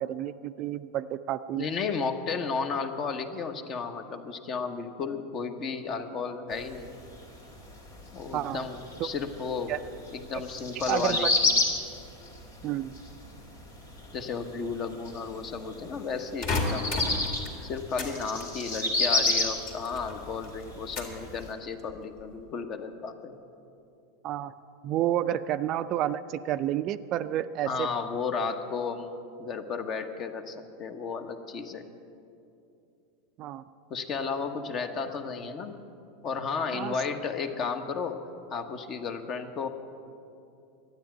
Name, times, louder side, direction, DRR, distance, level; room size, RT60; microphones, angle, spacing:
voice 1, 0.0-1.7 8.3-8.6 9.0-9.1 9.7-9.8 10.8-11.2 12.6-12.9 24.2-24.5 24.8-27.9 33.4-33.6 36.7-36.9, right 12 dB, 45° right, 13 dB, 0.4 m, -30 dB
voice 2, 1.5-6.9 8.1-9.7 10.1-11.3 14.1-17.0 17.6-23.4 27.6-31.8 33.9-35.7 36.2-38.2 38.5-39.7, left 5 dB, 40° left, 8 dB, 1.0 m, -33 dB
sound 1, 6.5-21.5, left 2 dB, 75° left, 2.5 m, -31 dB
sound 2, 16.4-18.1 18.4-20.2 20.4-21.3 21.7-22.2, left 2 dB, 55° left, 2.5 m, -33 dB
12.0 x 9.4 x 8.9 m, 2.7 s
figure-of-eight pair, 85°, 0 cm